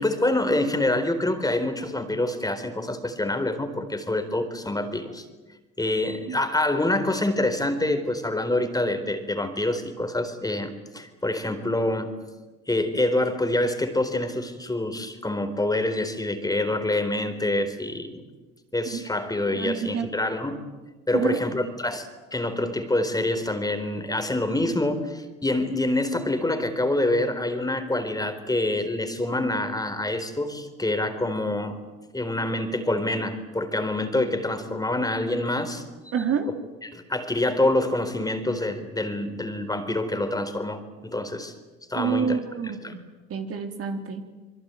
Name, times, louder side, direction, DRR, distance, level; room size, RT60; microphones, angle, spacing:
voice 1, 0.0-5.2 5.8-12.1 12.7-18.2 18.7-20.6 21.1-31.8 32.1-35.8 36.8-41.5 41.9-42.4 42.8-42.9, left 1 dB, 10° left, 8 dB, 4.2 m, -26 dB
voice 2, 19.5-20.1 21.1-21.4 36.1-36.5 42.0-43.0 43.3-44.3, right 6 dB, 45° right, 5 dB, 3.9 m, -28 dB
26.5 x 23.0 x 9.2 m, 1.2 s
hypercardioid pair, 80°, 32 cm